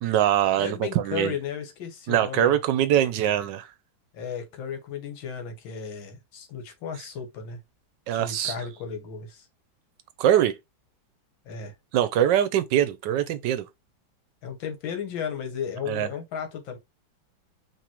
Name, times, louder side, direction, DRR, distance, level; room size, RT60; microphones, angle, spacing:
voice 1, 0.0-1.3 2.1-3.7 8.1-8.5 10.2-10.5 11.9-13.6 15.9-16.1, right 11 dB, 75° right, 1.1 m, -23 dB
voice 2, 0.6-2.5 4.1-7.6 8.1-9.5 11.5-11.7 14.4-16.8, left 7 dB, 80° left, 1.8 m, -34 dB
5.2 x 3.0 x 2.9 m
omnidirectional pair, 2.1 m